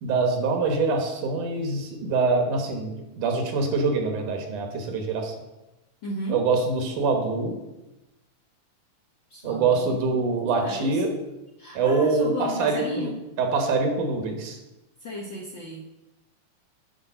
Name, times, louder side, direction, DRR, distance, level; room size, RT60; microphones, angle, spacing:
voice 1, 0.0-5.3 6.3-7.6 9.4-11.1 11.7-13.1 13.4-14.6, right 4 dB, 80° right, 4 dB, 2.9 m, -24 dB
voice 2, 6.0-6.4 9.3-11.1 11.6-13.2 15.0-15.8, left 1 dB, 60° left, -2 dB, 1.2 m, -34 dB
10.5 x 5.5 x 5.5 m, 0.98 s
omnidirectional pair, 3.5 m